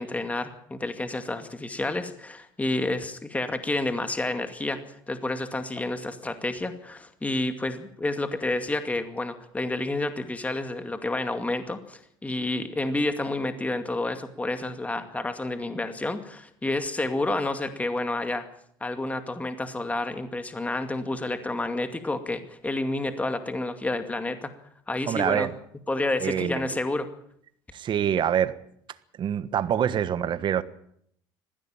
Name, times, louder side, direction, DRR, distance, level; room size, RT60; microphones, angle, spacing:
voice 1, 0.0-4.8 5.1-18.5 18.8-24.5 24.9-25.5 25.9-27.1, left 2 dB, 15° left, 2.3 m, -29 dB
voice 2, 25.1-25.5 26.2-26.6 27.7-28.5 29.2-30.6, right 9 dB, 50° right, 1.4 m, -25 dB
20.5 x 15.5 x 8.9 m
supercardioid pair, 90°, 11 cm